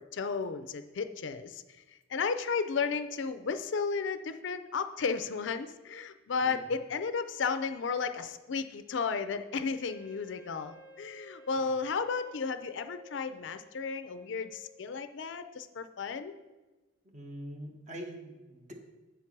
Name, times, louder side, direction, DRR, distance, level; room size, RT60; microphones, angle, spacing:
voice 1, 0.0-1.6 2.1-16.3, left 5 dB, 65° left, 10 dB, 0.4 m, -33 dB
Wind instrument woodwind instrument, 9.8-14.9, left 3 dB, 5° right, 1.4 m, -54 dB
voice 2, 17.1-18.7, equal, 35° right, 2 dB, 1.1 m, -43 dB
8.1 x 4.6 x 5.9 m, 1.2 s
head